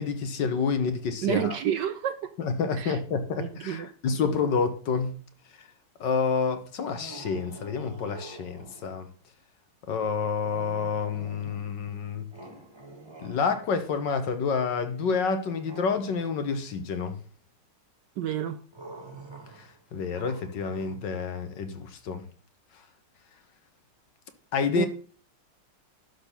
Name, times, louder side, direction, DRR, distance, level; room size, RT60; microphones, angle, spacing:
voice 1, 0.0-1.5 2.4-5.1 6.0-9.1 9.9-12.3 13.2-17.2 19.6-19.7 19.9-22.2 24.5-24.9, left 5 dB, 65° left, 1.6 m, -28 dB
voice 2, 1.2-2.3 2.8-3.0 3.4-3.9 18.2-18.6 24.8-24.9, right 10 dB, 70° right, 1.1 m, -29 dB
sound 1, 6.9-9.0 10.4-11.9 12.3-14.0 15.5-16.6 18.7-21.0, right 2 dB, 15° right, 1.5 m, -47 dB
12.0 x 4.0 x 6.8 m
omnidirectional pair, 2.3 m